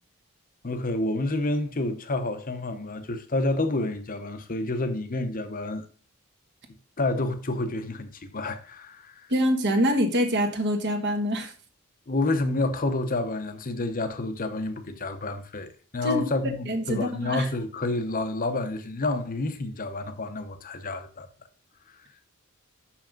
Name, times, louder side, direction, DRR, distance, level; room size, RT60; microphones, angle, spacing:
voice 1, 0.6-5.9 7.0-9.3 12.1-21.3, left 2 dB, 40° left, 0.9 m, -29 dB
voice 2, 9.3-11.5 16.0-17.5, equal, 50° right, 1.4 m, -25 dB
6.2 x 5.9 x 5.3 m
head